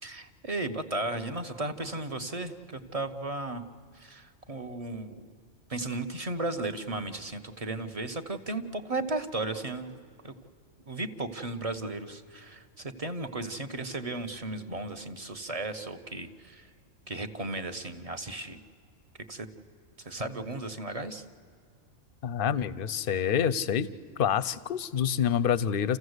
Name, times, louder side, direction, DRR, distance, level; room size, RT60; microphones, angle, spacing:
voice 1, 0.0-3.6 3.9-5.3 5.7-10.3 10.9-16.7 17.1-18.6 19.3-19.5 20.0-21.2, right 2 dB, 30° right, 7 dB, 1.0 m, -35 dB
voice 2, 22.2-23.9 24.2-26.0, left 8 dB, 50° left, 17 dB, 0.8 m, -27 dB
29.0 x 15.0 x 8.0 m, 2.2 s
omnidirectional pair, 1.3 m